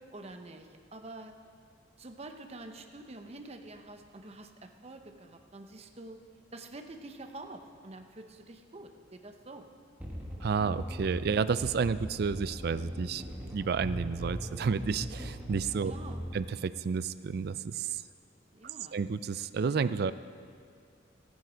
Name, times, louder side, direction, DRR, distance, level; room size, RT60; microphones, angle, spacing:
voice 1, 0.0-1.3 2.0-6.2 6.5-9.7 15.8-16.2 18.5-19.0, right 2 dB, 35° right, 5 dB, 0.8 m, -47 dB
sound 1, 10.0-16.4, equal, 10° right, 1.4 m, -39 dB
voice 2, 10.4-13.2 13.5-15.9 16.3-18.0 18.9-20.1, right 5 dB, 55° right, 14 dB, 0.4 m, -31 dB
14.0 x 9.3 x 5.1 m, 2.3 s
head